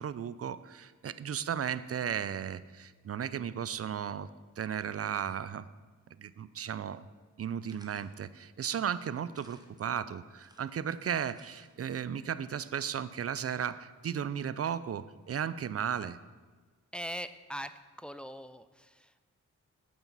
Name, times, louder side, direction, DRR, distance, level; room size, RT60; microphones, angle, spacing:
voice 1, 0.0-4.3 4.6-5.7 6.2-7.0 7.4-16.2, right 8 dB, 45° right, 16 dB, 0.5 m, -35 dB
sound 1, 7.6-8.1 8.6-9.9 10.3-11.7 12.0-12.1 12.3-12.4, right 1 dB, 10° right, 1.2 m, -62 dB
voice 2, 16.9-17.7 18.0-19.2, equal, 5° left, 11 dB, 0.5 m, -41 dB
8.6 x 8.2 x 4.1 m, 1.3 s
supercardioid pair, 40°, 33 cm